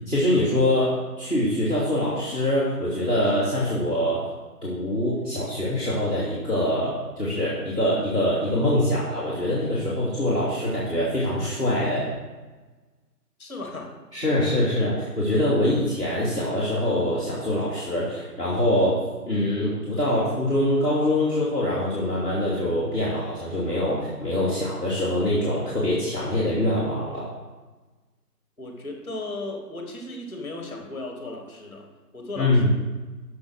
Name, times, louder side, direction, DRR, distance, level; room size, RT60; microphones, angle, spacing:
voice 1, 0.1-4.2 4.6-12.1 14.1-27.3 32.4-32.7, left 1 dB, 5° right, -13 dB, 1.5 m, -24 dB
voice 2, 13.4-13.9 28.6-31.9 32.1-32.7, left 2 dB, 15° left, 1 dB, 1.7 m, -35 dB
8.2 x 6.3 x 6.5 m, 1.3 s
figure-of-eight pair, 155°, 49 cm